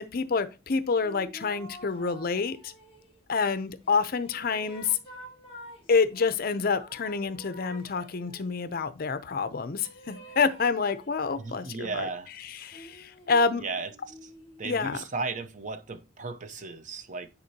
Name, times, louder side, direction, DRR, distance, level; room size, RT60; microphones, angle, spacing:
voice 1, 0.0-2.7 3.3-5.0 5.9-12.1 12.4-13.6 14.6-15.0, left 5 dB, 50° left, 0.6 m, -28 dB
sound 1, 1.0-3.2 3.8-6.3 6.8-8.6 9.8-11.7 12.5-14.8, equal, 30° left, 2.7 m, -49 dB
voice 2, 11.3-12.3 13.6-13.9 14.2-14.3 14.6-17.4, right 3 dB, 40° right, 0.7 m, -35 dB
9.5 x 4.4 x 2.8 m
head